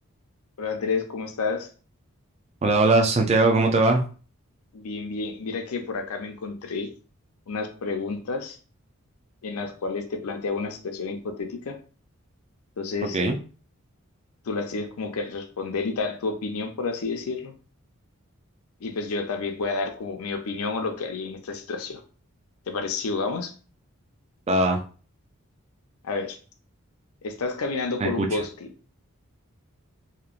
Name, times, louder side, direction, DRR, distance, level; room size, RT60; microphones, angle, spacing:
voice 1, 0.6-1.7 4.7-6.9 7.5-8.6 9.4-11.8 12.8-13.2 14.5-17.6 18.8-22.0 22.7-23.5 26.0-26.4 27.2-28.5, left 4 dB, 85° left, 5 dB, 0.5 m, -30 dB
voice 2, 2.6-4.0 13.1-13.4 24.5-24.8 28.0-28.3, right 2 dB, 30° right, 2 dB, 0.3 m, -20 dB
2.9 x 2.1 x 2.4 m, 0.38 s
head